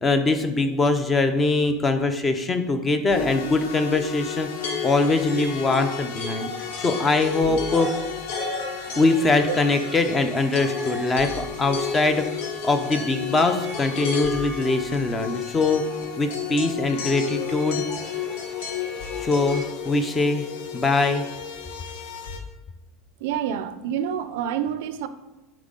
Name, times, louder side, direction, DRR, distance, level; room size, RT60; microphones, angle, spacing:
voice 1, 0.0-4.5 4.8-6.5 6.8-7.9 9.0-12.3 12.6-15.8 16.2-17.8 19.2-20.4 20.7-21.2, left 3 dB, 15° left, 8 dB, 0.5 m, -22 dB
sound 1, 3.1-22.4, left 9 dB, 70° left, 0.9 m, -34 dB
sound 2, 4.6-19.6, left 3 dB, 85° left, 1.7 m, -34 dB
voice 2, 23.2-25.1, right 9 dB, 70° right, 12 dB, 0.4 m, -28 dB
9.0 x 4.0 x 3.7 m, 1.1 s
cardioid pair, 180°, 0 cm